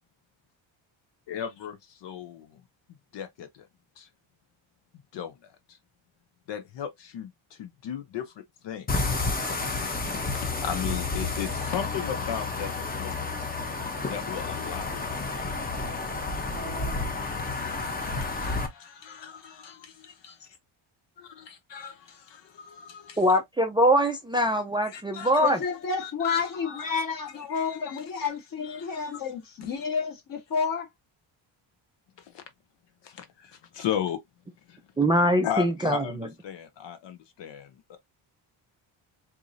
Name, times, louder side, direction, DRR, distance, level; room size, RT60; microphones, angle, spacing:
voice 1, 1.3-2.6 3.1-3.7 4.0-4.1 5.1-5.3 5.7-5.8 6.5-8.3 8.6-8.9 10.4-13.3 14.1-15.6 17.2-20.4 21.7-23.4 24.8-25.6 26.0-27.0 27.5-28.0 28.6-29.1 32.2-32.4 33.0-34.2 34.7-34.8 35.4-38.0, left 9 dB, 60° left, 0.8 m, -36 dB
sound 1, 8.9-18.7, left 3 dB, 20° left, 0.8 m, -30 dB
voice 2, 23.2-25.6 35.0-36.0, equal, 10° right, 0.4 m, -22 dB
voice 3, 25.4-30.9, left 5 dB, 45° left, 1.5 m, -30 dB
4.6 x 2.7 x 2.6 m
cardioid pair, 145°, 48 cm